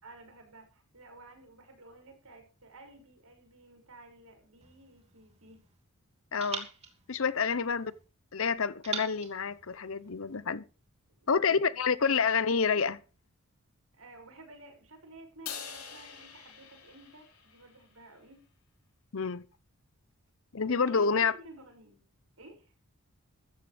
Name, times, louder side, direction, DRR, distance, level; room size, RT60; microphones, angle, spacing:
voice 1, 0.0-5.6 7.3-7.8 11.1-12.0 13.9-18.4 20.7-22.0 22.4-22.7, right 2 dB, 80° right, 6.3 m, -53 dB
sound 1, 4.6-5.8 6.4-8.0 8.8-10.4, right 5 dB, 30° right, 2.8 m, -44 dB
voice 2, 6.3-6.7 7.1-7.9 8.3-10.6 11.3-13.0 19.1-19.4 20.5-21.3, left 5 dB, 65° left, 0.7 m, -28 dB
Crash cymbal, 15.5-17.8, left 8 dB, 90° left, 4.2 m, -44 dB
14.5 x 14.5 x 3.4 m
head